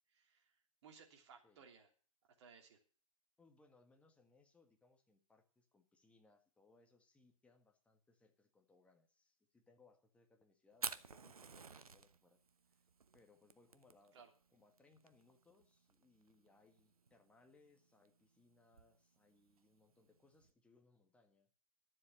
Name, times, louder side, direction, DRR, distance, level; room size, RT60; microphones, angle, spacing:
voice 1, 0.1-0.6 0.8-1.9 2.4-2.8 14.1-14.3, right 6 dB, 50° right, 3 dB, 3.2 m, -61 dB
voice 2, 3.4-12.4 12.7-12.9 13.1-14.2 14.5-21.5, left 3 dB, 5° left, 4 dB, 1.7 m, -71 dB
Fire, 10.7-20.5, right 5 dB, 85° right, 1.0 m, -52 dB
12.5 x 7.6 x 8.6 m, 0.41 s
hypercardioid pair, 130°, 18 cm